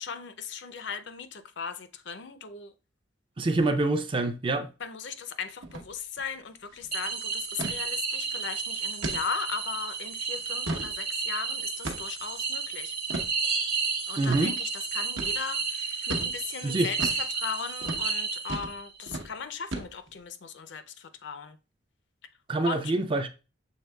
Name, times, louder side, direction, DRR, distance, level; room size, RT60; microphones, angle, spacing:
voice 1, 0.0-2.7 4.8-13.0 14.1-21.6 22.6-22.9, left 6 dB, 65° left, 0.5 m, -38 dB
voice 2, 3.4-4.7 14.2-14.5 16.6-16.9 22.5-23.3, right 2 dB, 25° right, 0.4 m, -26 dB
sound 1, 5.6-5.9 6.2-6.3 6.6-6.9 7.6-7.8 8.3-8.4 9.0-9.2 9.7-9.8 10.4-10.9 11.8-12.2 13.1-13.3 14.3-14.4 15.2-15.4 16.1-16.3 17.0-17.2 17.8-18.0 18.5-18.8 19.1-19.3 19.7-20.2, right 2 dB, 80° right, 0.9 m, -34 dB
sound 2, 6.9-18.9, right 5 dB, 50° right, 1.1 m, -32 dB
6.4 x 3.6 x 2.2 m
head